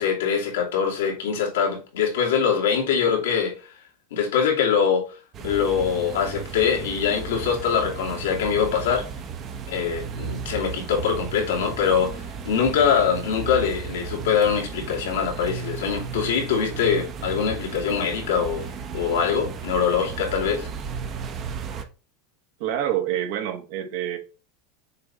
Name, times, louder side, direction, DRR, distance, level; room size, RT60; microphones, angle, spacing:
voice 1, 0.0-3.6 4.1-5.0 5.4-9.1 9.7-20.7, left 7 dB, 90° left, 2.5 m, -23 dB
sound 1, 5.3-21.8, right 6 dB, 30° right, 1.0 m, -34 dB
voice 2, 22.6-24.2, right 11 dB, 65° right, 1.6 m, -27 dB
6.8 x 3.6 x 4.1 m
supercardioid pair, 145°, 0 cm